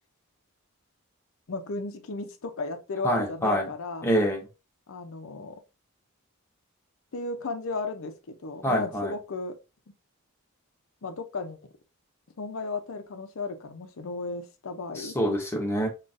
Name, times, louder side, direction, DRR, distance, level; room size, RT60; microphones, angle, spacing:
voice 1, 1.5-4.1 4.9-5.6 7.1-9.6 11.0-11.6 12.4-15.2, left 3 dB, 60° left, 0.5 m, -35 dB
voice 2, 3.0-3.7 4.0-4.4 8.6-9.1 15.0-15.9, equal, 10° left, 0.6 m, -26 dB
3.8 x 2.4 x 2.5 m
head